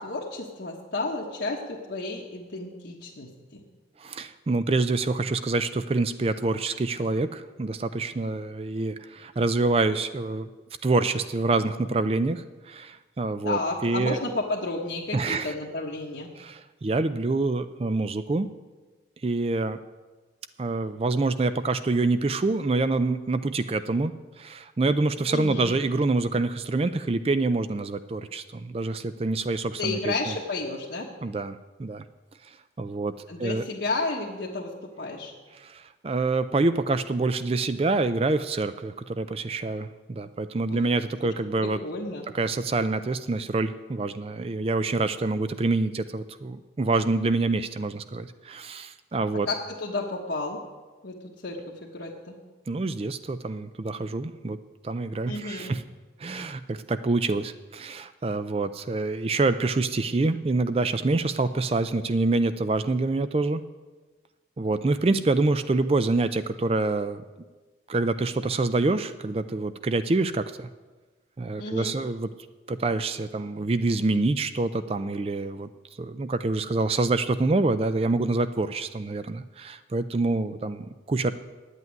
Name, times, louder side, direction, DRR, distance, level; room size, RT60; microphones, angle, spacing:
voice 1, 0.0-3.6 13.4-16.3 25.3-25.8 29.8-31.1 33.3-35.3 40.7-40.9 41.2-41.3 41.6-42.2 49.5-50.6 51.0-51.2 51.4-52.3 55.3-55.7 71.6-71.9, left 2 dB, 75° left, -3 dB, 1.3 m, -32 dB
voice 2, 4.0-10.5 10.8-14.2 15.1-15.5 16.4-18.5 19.2-19.8 20.6-30.1 31.2-32.0 32.5-33.7 35.5-41.8 42.3-49.5 52.7-54.6 54.8-55.8 56.2-63.6 64.6-67.2 67.9-70.7 71.4-72.3 72.7-75.7 76.0-81.3, right 3 dB, 30° right, 12 dB, 0.4 m, -26 dB
9.2 x 8.2 x 9.5 m, 1.3 s
head